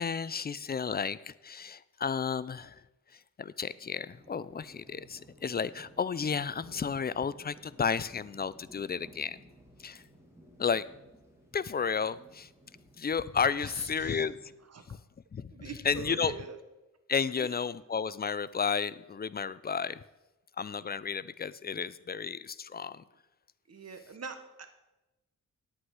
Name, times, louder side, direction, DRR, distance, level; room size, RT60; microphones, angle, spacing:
voice 1, 0.0-2.7 3.4-9.4 9.8-10.0 10.6-10.9 11.5-12.5 13.0-14.4 15.3-15.5 15.8-16.3 17.1-20.0 20.6-23.0, left 6 dB, 30° left, 17 dB, 0.4 m, -32 dB
sound 1, 3.9-14.5, equal, 10° right, 2.2 m, -57 dB
voice 2, 13.6-14.2 14.7-14.8 15.5-16.6 17.4-17.5 23.7-24.7, right 5 dB, 55° right, 7 dB, 1.2 m, -44 dB
9.6 x 8.9 x 4.8 m, 1.0 s
wide cardioid pair, 85°, 31 cm